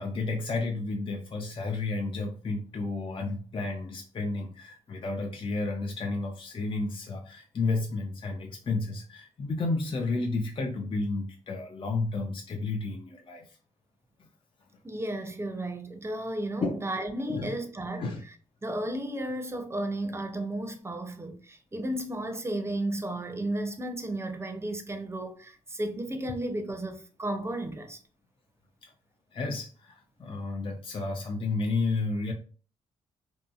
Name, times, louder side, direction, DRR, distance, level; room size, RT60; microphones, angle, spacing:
voice 1, 0.0-13.5 16.6-16.8 17.3-17.5 18.0-18.2 29.3-32.3, left 3 dB, 35° left, 0.5 m, -31 dB
voice 2, 14.8-18.1 18.6-28.0, right 1 dB, 15° right, 0.6 m, -33 dB
2.7 x 2.5 x 2.4 m
supercardioid pair, 50°, 15 cm